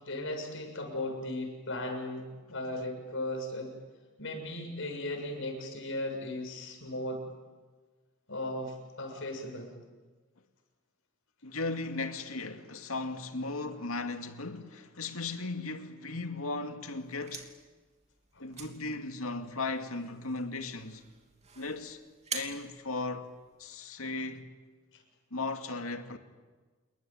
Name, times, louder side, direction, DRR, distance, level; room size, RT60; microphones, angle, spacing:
voice 1, 0.0-3.7 4.2-7.2 8.3-9.7 18.3-18.5 24.9-25.0, left 1 dB, 65° left, 7.0 m, -37 dB
voice 2, 11.4-17.5 18.4-21.1 21.6-22.0 22.3-23.3 23.6-24.5 25.3-26.2, left 3 dB, 85° left, 2.3 m, -36 dB
sound 1, 17.0-23.8, right 6 dB, 30° right, 3.0 m, -46 dB
28.5 x 22.0 x 9.2 m
head